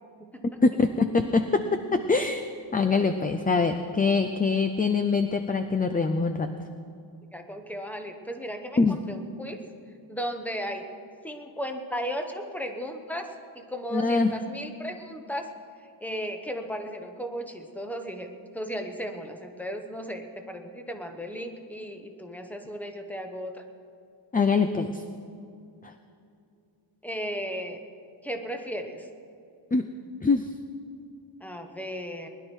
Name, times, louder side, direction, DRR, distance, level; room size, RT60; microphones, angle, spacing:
voice 1, 0.6-2.4 2.7-6.5 8.8-9.0 13.9-14.3 24.3-25.0 25.8-25.9 29.7-29.9 30.2-30.5, left 4 dB, 20° left, 8 dB, 0.4 m, -24 dB
voice 2, 7.3-9.6 10.1-10.9 11.2-15.5 16.0-23.6 27.0-27.8 28.2-29.1 31.4-32.3, equal, 5° left, 5 dB, 1.0 m, -35 dB
20.0 x 11.0 x 4.5 m, 2.5 s
wide cardioid pair, 135°, 46 cm